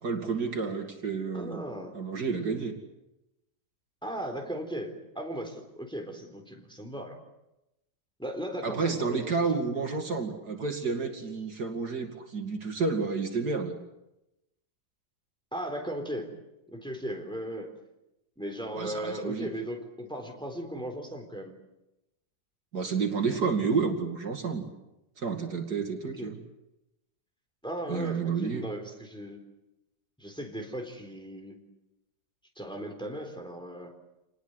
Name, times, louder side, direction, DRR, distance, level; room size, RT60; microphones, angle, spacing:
voice 1, 0.0-1.6 1.9-2.7 8.6-13.8 18.7-19.5 22.7-24.6 25.2-26.4 27.9-28.7, right 4 dB, 60° right, 4 dB, 2.9 m, -30 dB
voice 2, 1.3-1.9 4.0-7.2 8.2-9.3 15.5-16.3 16.7-17.7 18.4-21.5 26.2-26.3 27.6-29.4 30.2-31.6 32.6-33.9, right 1 dB, 5° left, 3 dB, 3.8 m, -37 dB
27.5 x 20.5 x 8.1 m, 0.91 s
omnidirectional pair, 1.9 m